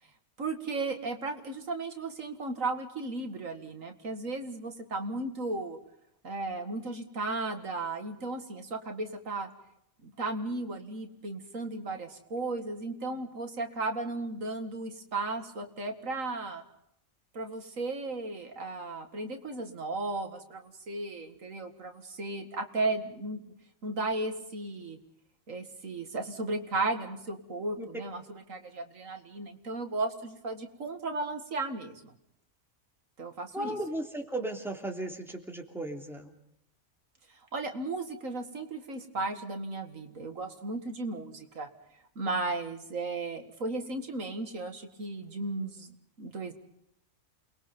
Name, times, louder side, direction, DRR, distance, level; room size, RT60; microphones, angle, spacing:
voice 1, 0.4-5.8 6.2-9.5 10.0-16.6 17.3-23.4 23.8-25.0 25.5-32.1 33.2-33.8 37.5-41.7 42.2-45.9 46.2-46.5, right 2 dB, 90° right, 5 dB, 2.4 m, -35 dB
voice 2, 33.5-36.3, right 1 dB, ahead, 1 dB, 3.0 m, -36 dB
29.0 x 21.0 x 5.4 m, 0.76 s
omnidirectional pair, 1.3 m